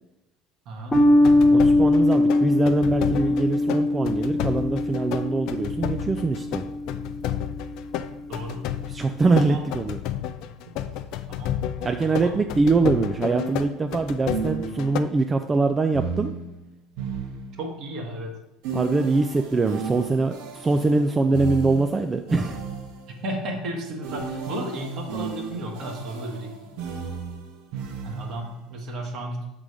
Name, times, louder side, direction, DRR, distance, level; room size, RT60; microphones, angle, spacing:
voice 1, 0.6-2.2 8.3-8.6 9.3-9.7 11.3-12.4 17.6-18.4 23.1-26.8 28.0-29.4, right 1 dB, 60° right, 1 dB, 1.6 m, -34 dB
sound 1, 0.9-15.0, left 11 dB, 65° left, 0.4 m, -32 dB
sound 2, 0.9-7.7, left 2 dB, 15° left, 0.8 m, -21 dB
voice 2, 1.5-6.7 8.9-10.0 11.8-16.3 18.7-22.6, right 3 dB, 25° right, 7 dB, 0.4 m, -23 dB
sound 3, 13.2-15.1 15.9-17.9 18.6-23.2 24.0-28.5, right 5 dB, 75° right, 1.0 m, -34 dB
6.4 x 3.8 x 4.8 m, 0.90 s
supercardioid pair, 90°, 0 cm